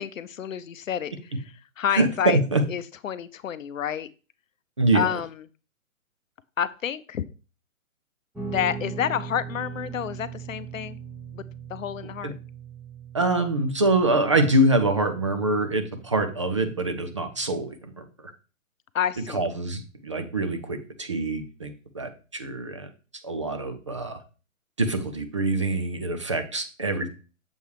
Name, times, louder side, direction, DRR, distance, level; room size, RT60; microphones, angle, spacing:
voice 1, 0.0-2.4 2.7-4.1 4.9-5.4 6.6-7.2 8.5-11.0 11.3-11.4 11.7-12.3 18.9-19.5, left 9 dB, 70° left, 15 dB, 0.6 m, -29 dB
voice 2, 1.9-2.6 4.8-5.0 12.2-12.3 13.1-18.0 19.3-22.9 23.2-24.2 24.8-27.1, right 2 dB, 25° right, 7 dB, 0.4 m, -25 dB
Guitar, 8.3-17.6, right 6 dB, 5° right, 1.0 m, -40 dB
7.0 x 3.2 x 4.6 m, 0.34 s
figure-of-eight pair, 135°, 41 cm